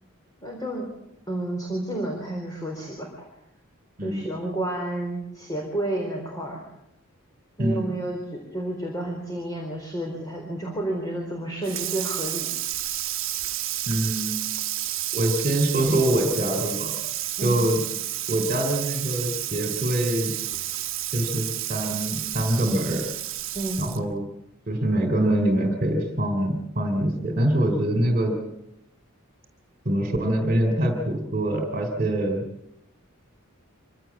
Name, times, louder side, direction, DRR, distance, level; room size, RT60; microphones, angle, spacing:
voice 1, 0.4-0.9 1.3-3.3 4.0-6.6 7.6-12.5 17.4-17.6 23.5-23.9, right 1 dB, 15° left, 0 dB, 4.1 m, -31 dB
Water tap faucet / Sink (filling or washing), 11.6-24.1, right 13 dB, 65° right, 1.1 m, -31 dB
voice 2, 13.9-14.3 15.1-16.9 17.4-17.8 18.3-20.3 21.1-23.0 23.8-24.3 24.7-28.3 29.8-32.4, right 1 dB, 30° right, 4 dB, 3.2 m, -24 dB
25.0 x 17.0 x 8.5 m, 0.83 s
head